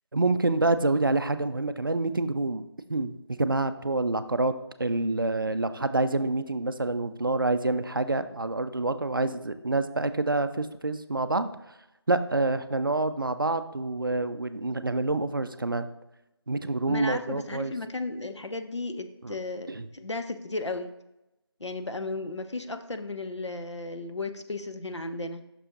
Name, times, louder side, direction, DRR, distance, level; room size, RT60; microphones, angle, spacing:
voice 1, 0.1-2.6 2.9-4.5 4.8-11.5 12.1-15.9 16.5-17.7 19.2-19.3 19.7-19.9, right 2 dB, 50° right, 10 dB, 0.4 m, -27 dB
voice 2, 16.9-20.9 21.6-25.4, left 2 dB, 80° left, 7 dB, 0.8 m, -34 dB
6.2 x 5.4 x 3.8 m, 0.91 s
figure-of-eight pair, 165°, 15 cm